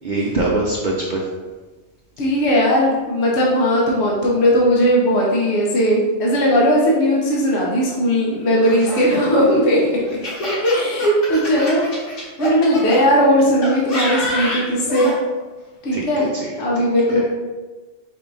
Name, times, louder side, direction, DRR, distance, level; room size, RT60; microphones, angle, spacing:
voice 1, 0.0-1.3 11.7-11.8 15.9-16.6 17.1-17.2, right 2 dB, 55° right, -3 dB, 0.6 m, -23 dB
voice 2, 2.2-9.8 10.4-11.9 12.1-15.1 15.8-16.3 16.6-17.2, equal, 70° left, -3 dB, 1.1 m, -17 dB
Laughter, 8.6-13.0 13.6-15.2, left 1 dB, 50° left, 1.3 m, -27 dB
4.7 x 3.6 x 2.6 m, 1.3 s
omnidirectional pair, 1.2 m